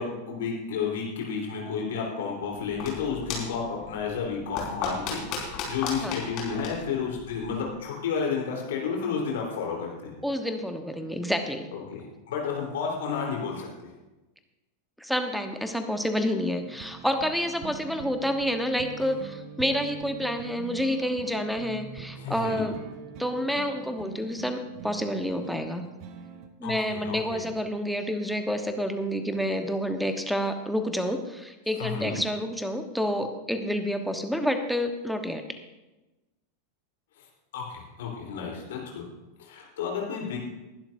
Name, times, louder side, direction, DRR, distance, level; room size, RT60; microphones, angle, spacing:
voice 1, 0.0-10.2 11.7-13.9 22.2-22.7 26.6-27.5 31.8-32.2 37.2-37.3 37.5-39.0 39.4-40.4, left 6 dB, 60° left, -1 dB, 3.8 m, -32 dB
sound 1, 2.5-7.8, left 5 dB, 40° left, 4.7 m, -36 dB
voice 2, 10.2-11.7 15.0-22.8 23.2-25.8 26.6-35.6, equal, ahead, 7 dB, 1.1 m, -29 dB
sound 2, 16.6-26.5, right 7 dB, 45° right, 1.1 m, -43 dB
21.0 x 11.5 x 2.7 m, 1.1 s
figure-of-eight pair, 90°, 0 cm